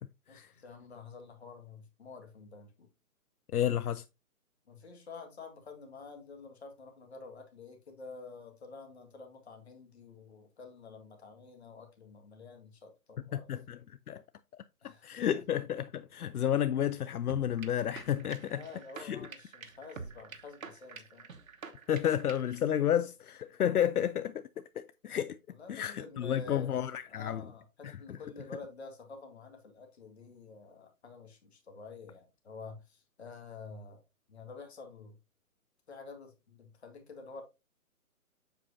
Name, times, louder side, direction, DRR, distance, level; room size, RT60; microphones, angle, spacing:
voice 1, 0.3-2.9 4.7-13.5 14.8-15.4 18.5-21.3 25.5-26.8 27.1-34.0 34.3-35.2 35.9-37.4, left 4 dB, 45° left, 1.9 m, -49 dB
voice 2, 3.5-4.0 13.3-13.8 14.1-14.2 14.8-18.6 19.0-19.3 21.9-24.5 24.8-25.4 25.7-27.4 27.8-28.2, left 10 dB, 80° left, 0.6 m, -31 dB
sound 1, 17.3-22.6, right 5 dB, 65° right, 1.2 m, -47 dB
7.8 x 5.8 x 2.7 m
hypercardioid pair, 170°, 44 cm